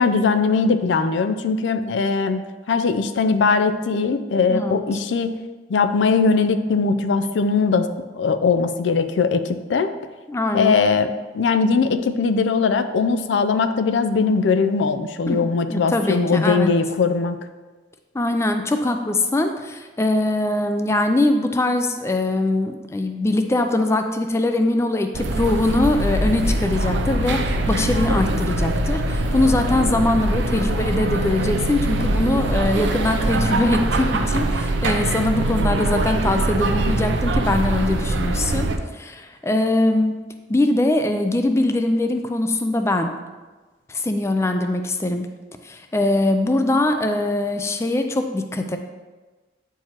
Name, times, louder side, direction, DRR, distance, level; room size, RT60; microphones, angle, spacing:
voice 1, 0.0-2.4 2.7-5.4 5.7-7.9 8.2-9.9 10.5-17.4, left 4 dB, 85° left, 10 dB, 0.4 m, -20 dB
voice 2, 10.3-10.8 15.3-15.4 15.7-16.7 18.1-38.7 38.9-40.2 40.5-43.1 43.9-45.3 45.6-48.8, left 2 dB, 15° left, 6 dB, 0.3 m, -22 dB
sound 1, 25.1-38.8, right 1 dB, 80° right, 0.5 m, -23 dB
8.8 x 4.6 x 2.9 m, 1.3 s
head